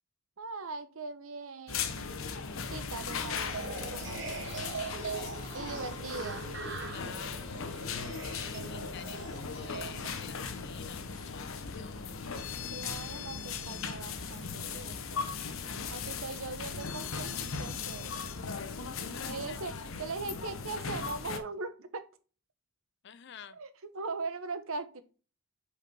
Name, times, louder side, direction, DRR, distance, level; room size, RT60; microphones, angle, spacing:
voice 1, 0.4-2.2 2.7-4.6 5.5-6.5 12.7-15.3 15.9-18.1 19.3-22.1 23.5-25.0, right 3 dB, 80° right, 0.9 m, -40 dB
sound 1, 1.7-21.4, left 5 dB, 75° left, 0.8 m, -38 dB
sound 2, 3.4-10.1, right 4 dB, 55° right, 1.2 m, -41 dB
voice 2, 4.6-5.7 6.0-6.1 6.9-7.7 8.3-12.1 15.8-16.4 19.1-20.2 23.0-23.6, left 8 dB, 55° left, 0.5 m, -50 dB
5.2 x 5.1 x 4.6 m
head